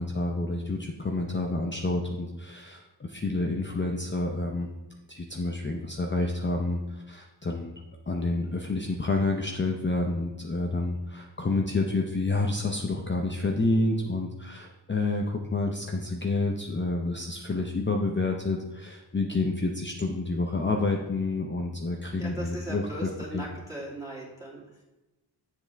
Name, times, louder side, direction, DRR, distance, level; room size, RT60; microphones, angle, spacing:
voice 1, 0.0-4.7 5.1-7.7 8.1-23.1 23.3-23.5, left 2 dB, 25° left, 1 dB, 0.6 m, -29 dB
voice 2, 22.1-24.8, right 1 dB, 5° right, -6 dB, 2.6 m, -38 dB
7.8 x 7.2 x 3.4 m, 1.0 s
wide cardioid pair, 100°, 45 cm